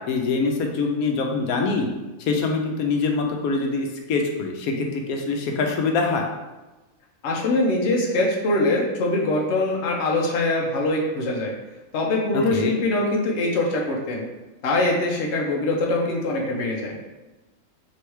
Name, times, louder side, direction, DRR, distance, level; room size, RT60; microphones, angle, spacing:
voice 1, 0.1-1.9 2.2-6.2 12.5-12.7, left 4 dB, 85° left, 2 dB, 1.1 m, -24 dB
voice 2, 7.2-11.5 11.9-14.3 14.6-17.0, left 2 dB, 55° left, -1 dB, 1.0 m, -23 dB
3.3 x 3.0 x 4.5 m, 1.1 s
omnidirectional pair, 1.5 m